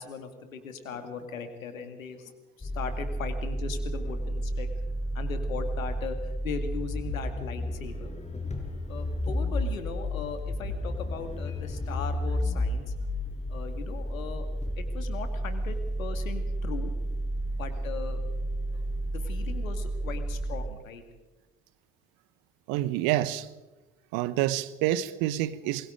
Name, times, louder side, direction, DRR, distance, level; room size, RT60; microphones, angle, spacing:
voice 1, 0.0-2.3 2.6-4.7 5.1-8.1 8.9-12.9 13.5-14.5 14.8-16.9 17.6-18.2 18.7-21.0, left 5 dB, 75° left, 2.4 m, -38 dB
sound 1, 2.6-20.7, equal, 15° left, 5.0 m, -32 dB
voice 2, 22.7-23.5 24.1-25.9, right 14 dB, 60° right, 1.2 m, -28 dB
28.0 x 22.0 x 5.2 m
figure-of-eight pair, 55°, 40 cm